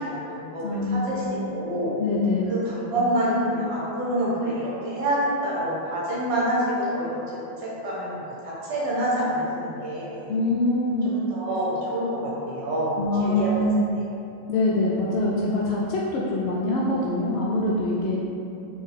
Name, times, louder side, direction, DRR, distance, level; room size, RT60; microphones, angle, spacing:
voice 1, 0.0-2.0 2.5-7.2 7.6-10.3 11.0-13.5, right 1 dB, 45° right, -7 dB, 0.9 m, -27 dB
voice 2, 0.6-1.3 2.0-2.5 10.3-11.1 13.0-13.8 14.5-18.2, left 2 dB, 40° left, -5 dB, 0.3 m, -24 dB
2.8 x 2.2 x 3.1 m, 2.8 s
figure-of-eight pair, 90°, 0 cm